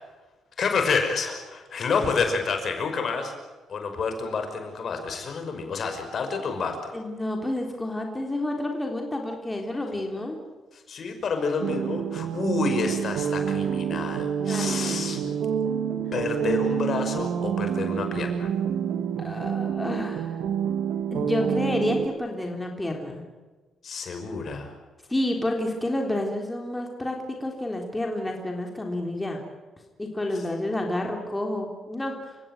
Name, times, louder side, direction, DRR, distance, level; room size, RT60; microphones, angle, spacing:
voice 1, 0.6-3.3 3.7-6.8 10.7-15.2 16.1-18.5 23.8-24.7, left 4 dB, 55° left, 6 dB, 5.6 m, -29 dB
voice 2, 6.9-10.4 14.5-15.4 19.2-20.4 21.1-23.2 25.1-29.4 30.0-32.2, left 1 dB, 15° left, 2 dB, 3.7 m, -29 dB
sound 1, 11.6-22.1, right 8 dB, 75° right, 1.8 m, -28 dB
29.0 x 16.5 x 9.2 m, 1.3 s
cardioid pair, 90°, 0 cm